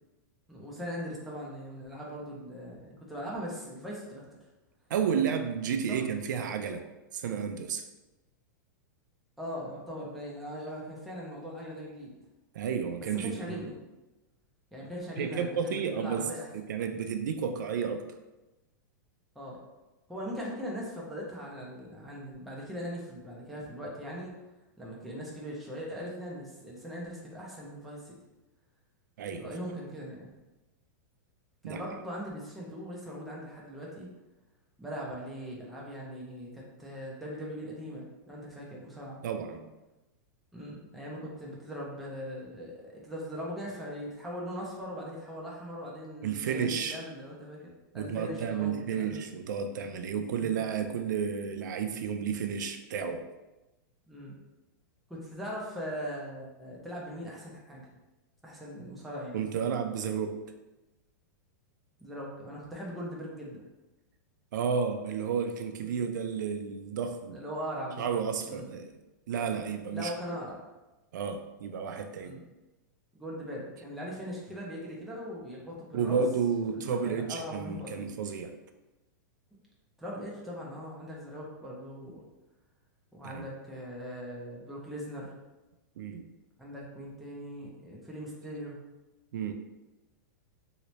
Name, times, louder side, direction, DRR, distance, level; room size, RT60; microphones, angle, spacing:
voice 1, 0.5-4.3 9.4-12.1 13.1-13.8 14.7-16.5 19.4-19.6 20.1-24.3 24.8-28.2 29.4-30.3 31.6-34.1 34.8-39.2 40.5-47.6 47.9-49.3 50.4-50.6 54.1-54.4 55.1-57.9 58.4-59.4 62.0-63.6 65.8-66.1 67.3-68.1 68.4-68.7 69.9-70.7 72.2-72.4 73.1-76.2 76.7-78.0 80.0-82.2 83.1-85.3 86.6-88.8, equal, ahead, -5 dB, 0.4 m, -40 dB
voice 2, 4.9-6.8 7.1-7.9 12.5-13.6 15.2-16.3 16.5-18.0 29.2-29.5 31.6-31.8 39.2-39.7 46.2-47.0 47.9-53.2 59.3-60.3 64.5-67.4 68.0-68.9 69.3-70.1 71.1-72.3 75.9-78.5 83.2-83.5 86.0-86.3 89.3-89.5, right 6 dB, 70° right, 6 dB, 0.4 m, -32 dB
3.1 x 2.9 x 3.0 m, 1.0 s
supercardioid pair, 175°, 11 cm